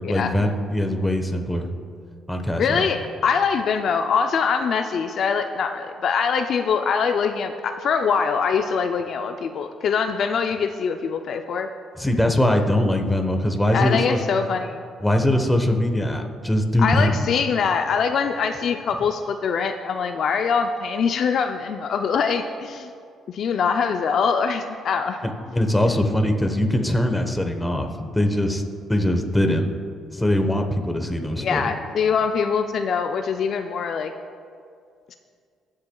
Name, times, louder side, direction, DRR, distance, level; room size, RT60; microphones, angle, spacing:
voice 1, 0.0-1.7 2.3-2.9 12.0-14.2 15.0-17.2 25.2-28.6 28.9-29.7 30.1-31.7, left 1 dB, 10° left, 4 dB, 1.1 m, -22 dB
voice 2, 2.6-11.7 13.7-14.8 16.8-22.9 23.3-25.3 25.8-25.9 31.3-34.1, left 6 dB, 60° left, 6 dB, 0.4 m, -23 dB
21.0 x 7.5 x 2.3 m, 2.3 s
cardioid pair, 85°, 0 cm